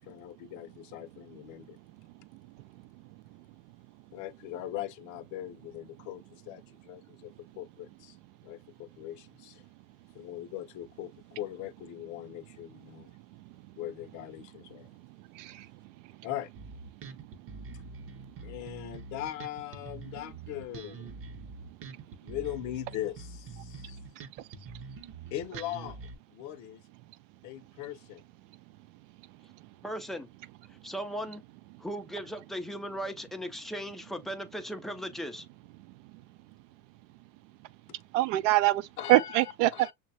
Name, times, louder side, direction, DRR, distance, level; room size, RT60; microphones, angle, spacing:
voice 1, 0.0-1.8 4.1-8.2 8.4-9.6 10.1-13.1 13.8-14.9 16.2-16.5 18.4-21.1 22.2-24.0 25.3-26.0 26.3-26.8 27.4-28.2 39.0-39.9, left 13 dB, 50° left, 0.7 m, -40 dB
voice 2, 15.3-15.7 38.1-39.9, right 16 dB, 70° right, 0.5 m, -24 dB
Bass guitar, 16.5-26.1, right 4 dB, 35° right, 0.7 m, -45 dB
voice 3, 29.8-30.3 30.7-31.4 31.8-35.5, equal, ahead, 0.4 m, -37 dB
6.3 x 2.2 x 2.6 m
supercardioid pair, 115°, 39 cm